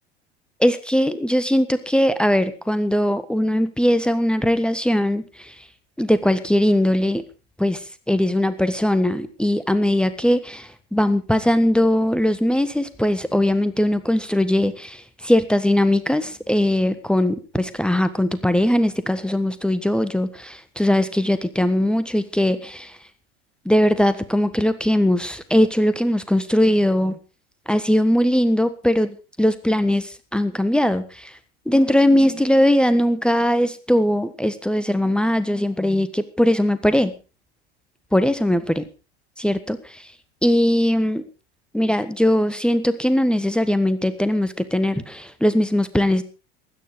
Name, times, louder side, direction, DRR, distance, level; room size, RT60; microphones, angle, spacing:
voice 1, 0.6-5.5 6.0-7.2 7.6-23.0 23.6-27.2 27.7-31.3 31.7-37.1 38.1-38.8 39.4-40.1 40.4-41.2 41.7-46.2, left 1 dB, 5° left, 12 dB, 1.4 m, -20 dB
16.0 x 12.5 x 4.8 m, 0.34 s
figure-of-eight pair, 80°, 33 cm